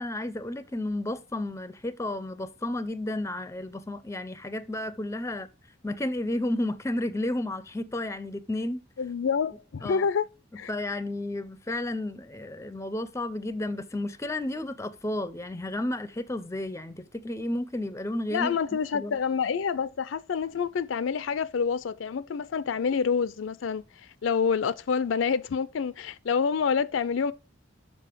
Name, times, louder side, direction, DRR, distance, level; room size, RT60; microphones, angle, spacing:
voice 1, 0.0-5.5 5.8-8.8 9.8-10.1 10.7-18.6 18.9-19.2, left 1 dB, 15° left, 0.5 m, -32 dB
voice 2, 9.0-10.3 10.6-10.7 18.3-23.8 24.2-27.3, left 6 dB, 70° left, 0.4 m, -27 dB
6.9 x 5.3 x 4.5 m
head